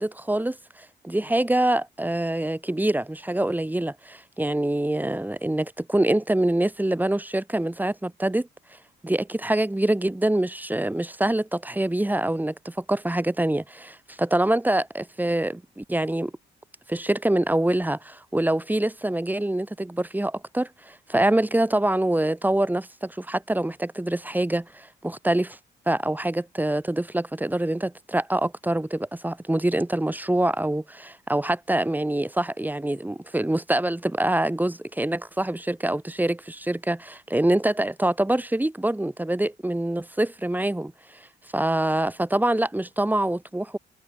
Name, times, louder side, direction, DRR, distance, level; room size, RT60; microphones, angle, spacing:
voice 1, 0.0-8.8 9.0-16.3 16.9-25.6 25.9-41.3 41.5-43.8, right 1 dB, 10° right, 5.5 m, -25 dB
cardioid pair, 90°, 20 cm